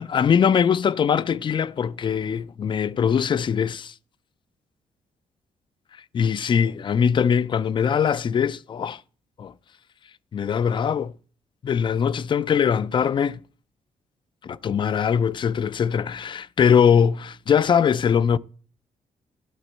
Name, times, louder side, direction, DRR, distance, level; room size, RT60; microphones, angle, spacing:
voice 1, 0.0-3.9 6.1-9.0 9.4-9.5 10.3-11.1 11.6-13.4 14.4-18.4, left 7 dB, 35° left, 0.4 m, -21 dB
11.5 x 4.2 x 7.7 m
cardioid pair, 105°, 13 cm